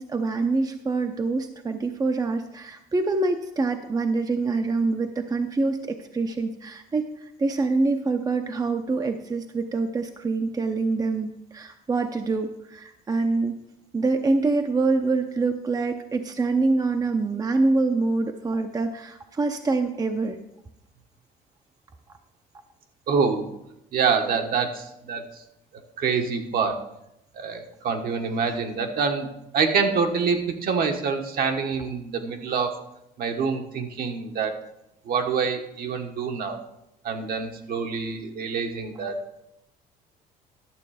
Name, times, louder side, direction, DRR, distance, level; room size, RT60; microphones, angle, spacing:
voice 1, 0.0-13.6 13.9-20.4, right 3 dB, 20° right, 6 dB, 0.7 m, -25 dB
voice 2, 23.1-23.5 23.9-25.3 26.0-26.8 27.3-29.3 29.5-32.7 33.2-34.6 35.0-36.6 37.0-39.2, right 5 dB, 60° right, 4 dB, 1.3 m, -26 dB
11.5 x 6.7 x 4.9 m, 0.84 s
cardioid pair, 110°, 17 cm